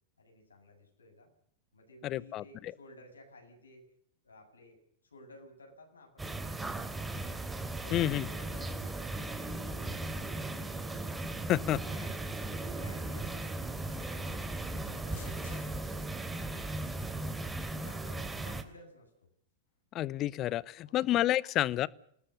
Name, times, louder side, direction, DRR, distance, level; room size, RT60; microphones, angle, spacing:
voice 1, 0.2-1.3 1.7-3.9 4.2-7.2 7.7-10.7 11.9-12.2 12.6-13.6 13.9-16.1 16.5-19.1 20.8-20.9 21.4-21.5, left 1 dB, 75° left, 3 dB, 8.0 m, -56 dB
voice 2, 2.0-2.7 7.9-8.3 11.5-11.8 19.9-21.9, left 14 dB, 35° left, 22 dB, 0.9 m, -29 dB
sound 1, 6.2-18.6, right 2 dB, 10° right, 3.2 m, -37 dB
sound 2, 13.8-17.8, left 7 dB, 60° left, 6.5 m, -60 dB
28.0 x 19.5 x 6.7 m, 0.69 s
figure-of-eight pair, 90°, 0 cm